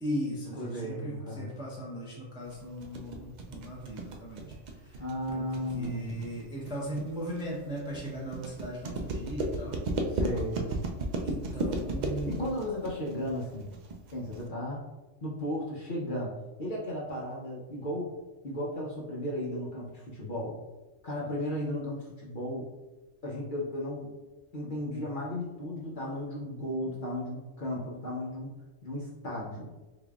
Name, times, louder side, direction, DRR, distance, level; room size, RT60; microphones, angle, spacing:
voice 1, 0.0-4.6 4.8-5.0 5.3-5.5 5.7-9.8 11.2-12.5, equal, 5° right, -4 dB, 0.5 m, -38 dB
voice 2, 0.6-1.5 5.0-6.3 10.1-10.8 12.3-13.7 14.1-14.8 15.2-16.3 16.6-18.1 18.4-20.6 21.0-22.7 23.2-24.1 24.5-28.5 28.8-29.7, left 1 dB, 50° left, -5 dB, 0.7 m, -35 dB
sound 1, 2.5-14.5, right 2 dB, 80° right, 0.4 m, -34 dB
3.8 x 3.5 x 2.3 m, 1.1 s
omnidirectional pair, 1.3 m